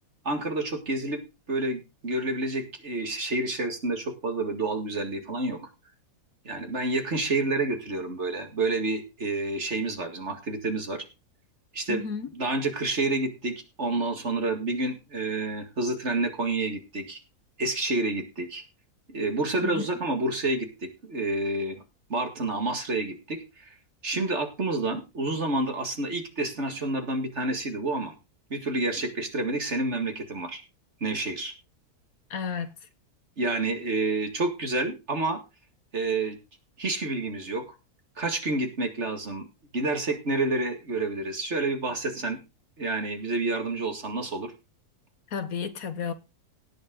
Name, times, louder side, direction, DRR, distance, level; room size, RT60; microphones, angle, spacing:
voice 1, 0.2-1.2 1.5-5.7 6.4-11.0 11.7-12.0 12.3-17.2 17.6-18.6 19.1-21.8 22.1-23.8 24.0-28.1 28.5-30.6 31.0-31.5 33.4-35.4 35.9-36.4 36.8-37.7 38.2-39.4 39.7-42.4 42.8-44.5, right 2 dB, 45° right, 2.3 m, -29 dB
voice 2, 11.9-12.3 19.6-19.9 32.3-32.9 45.3-46.1, left 6 dB, 65° left, 1.5 m, -32 dB
17.5 x 7.3 x 3.8 m
omnidirectional pair, 1.7 m